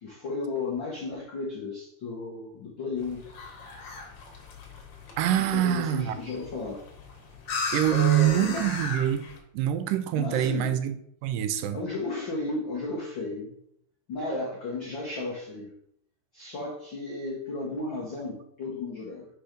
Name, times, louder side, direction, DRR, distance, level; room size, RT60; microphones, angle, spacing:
voice 1, 0.0-3.2 5.5-6.8 7.8-8.6 10.2-10.8 11.7-13.5 14.1-15.7 16.3-19.3, left 3 dB, 85° left, -3 dB, 1.0 m, -34 dB
sound 1, 3.0-9.4, left 3 dB, 60° left, 1.8 m, -37 dB
voice 2, 5.2-6.2 7.7-9.2 9.5-11.0 11.2-11.8, right 12 dB, 80° right, 10 dB, 2.1 m, -25 dB
5.2 x 4.5 x 5.1 m, 0.71 s
omnidirectional pair, 3.9 m